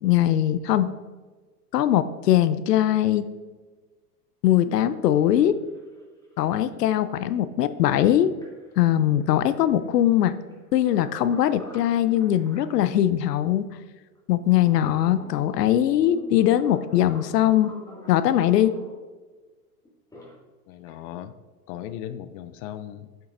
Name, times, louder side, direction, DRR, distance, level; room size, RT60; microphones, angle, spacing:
voice 1, 0.0-0.9 1.7-3.3 4.4-5.6 6.4-8.3 8.8-10.4 10.7-13.7 14.3-17.7 18.1-18.7, left 12 dB, 85° left, 13 dB, 0.6 m, -21 dB
sound 1, 5.2-5.3 5.5-6.3 8.0-8.1 8.4-12.9 13.4-13.5 14.2-19.0 19.8-20.3 20.7-21.0, left 1 dB, 10° left, 2.1 m, -46 dB
voice 2, 20.7-21.3 21.7-23.1, left 11 dB, 40° left, 12 dB, 0.4 m, -37 dB
8.0 x 7.4 x 2.6 m, 1.3 s
hypercardioid pair, 110°, 47 cm